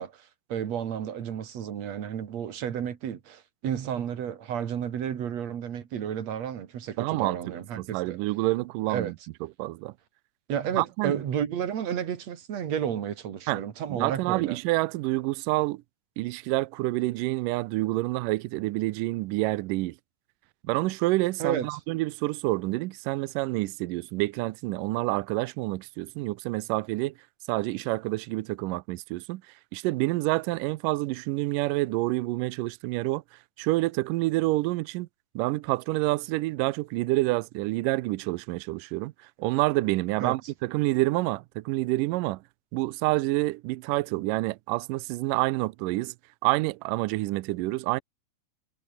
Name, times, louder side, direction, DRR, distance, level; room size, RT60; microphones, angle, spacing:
voice 1, 0.0-8.2 8.9-9.1 10.5-14.6 21.4-21.7 40.2-40.4, right 9 dB, 55° right, 2.8 m, -32 dB
voice 2, 7.0-7.4 7.8-9.1 9.6-9.9 10.8-11.2 13.5-13.6 13.9-15.8 16.2-20.0 20.6-27.1 27.5-29.4 29.7-33.2 33.6-35.1 35.4-39.1 39.4-42.4 42.7-46.1 46.4-48.0, right 20 dB, 80° right, 2.1 m, -28 dB
omnidirectional pair, 4.1 m